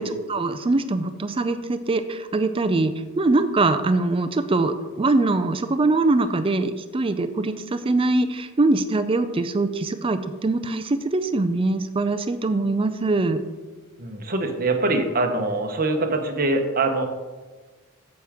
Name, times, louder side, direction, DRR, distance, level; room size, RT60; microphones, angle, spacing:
voice 1, 0.0-13.4, right 2 dB, 25° right, 10 dB, 0.4 m, -23 dB
voice 2, 14.0-17.1, right 2 dB, 40° right, 4 dB, 1.0 m, -23 dB
9.5 x 7.4 x 3.6 m, 1.3 s
head